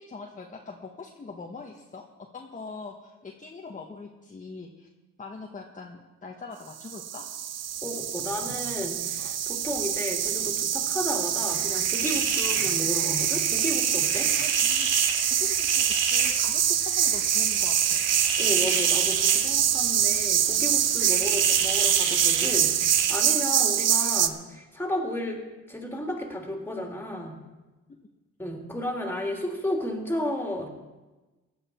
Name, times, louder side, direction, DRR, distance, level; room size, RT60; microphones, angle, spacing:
voice 1, 0.0-4.9 5.2-7.3 14.3-15.0 15.3-18.0, left 4 dB, 25° left, 1 dB, 1.4 m, -42 dB
sound 1, 6.8-24.3, right 10 dB, 55° right, 0.8 m, -25 dB
voice 2, 7.8-14.3 18.4-25.4 25.7-27.4 28.4-30.7, left 1 dB, 5° left, 0 dB, 3.1 m, -33 dB
sound 2, 11.5-23.1, right 4 dB, 80° right, 2.8 m, -33 dB
16.5 x 11.0 x 4.5 m, 1.1 s
cardioid pair, 90°, 30 cm